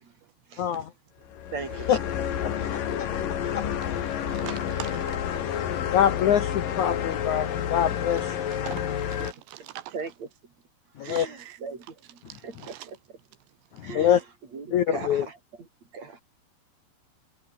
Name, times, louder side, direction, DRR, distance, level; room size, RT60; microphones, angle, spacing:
voice 1, 0.6-0.9 1.9-2.0 2.4-2.5 3.0-3.1 3.5-3.6 5.9-8.4 11.0-11.3 13.8-14.2 14.7-15.3, left 10 dB, 75° left, 1.7 m, -24 dB
sound 1, 1.3-9.3, left 9 dB, 55° left, 3.4 m, -29 dB
voice 2, 1.5-2.0 9.2-9.4 9.9-10.3 11.0-12.8 13.8-14.2 14.5-15.7 15.9-16.2, right 5 dB, 40° right, 5.2 m, -38 dB
voice 3, 4.3-5.1 8.5-8.8 9.1-9.9 11.0-11.6 12.6-12.9, right 14 dB, 80° right, 2.9 m, -41 dB
omnidirectional pair, 5.3 m